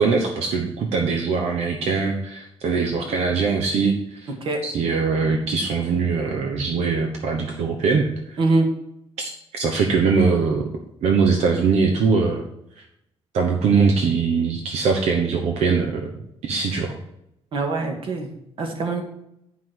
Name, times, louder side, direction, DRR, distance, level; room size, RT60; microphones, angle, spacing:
voice 1, 0.0-4.3 4.6-8.4 9.2-10.6 11.0-12.4 12.8-12.9 13.3-16.1 16.4-16.9, right 5 dB, 80° right, 3 dB, 1.1 m, -22 dB
voice 2, 8.4-8.7 17.5-18.3 18.6-19.0, right 3 dB, 55° right, 3 dB, 1.8 m, -23 dB
9.3 x 5.9 x 4.6 m, 0.80 s
cardioid pair, 165°, 11 cm